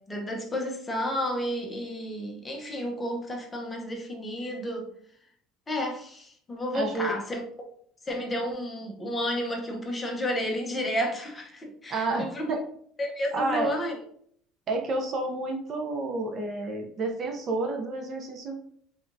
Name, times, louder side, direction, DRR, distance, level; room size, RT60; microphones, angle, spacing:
voice 1, 0.1-4.9 5.7-7.4 8.1-12.5 13.0-13.9, equal, 15° left, 1 dB, 0.8 m, -31 dB
voice 2, 6.7-7.1 11.9-12.6 13.3-13.7 14.7-18.6, right 2 dB, 35° right, 3 dB, 0.6 m, -30 dB
3.5 x 3.4 x 2.6 m, 0.62 s
cardioid pair, 140°, 0 cm